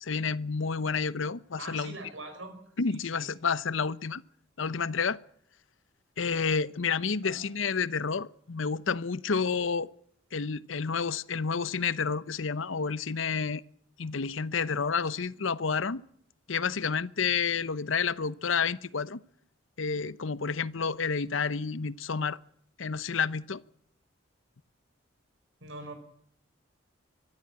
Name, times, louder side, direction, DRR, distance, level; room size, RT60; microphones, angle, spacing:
voice 1, 0.0-1.9 2.8-4.2 4.6-5.2 6.2-9.9 10.3-13.6 14.0-16.0 16.5-19.2 19.8-22.4 22.8-23.6, left 5 dB, 75° left, 0.8 m, -30 dB
voice 2, 1.6-2.6 2.9-3.3 7.2-7.4 25.6-25.9, right 2 dB, 75° right, 5.4 m, -43 dB
24.0 x 13.0 x 8.8 m
head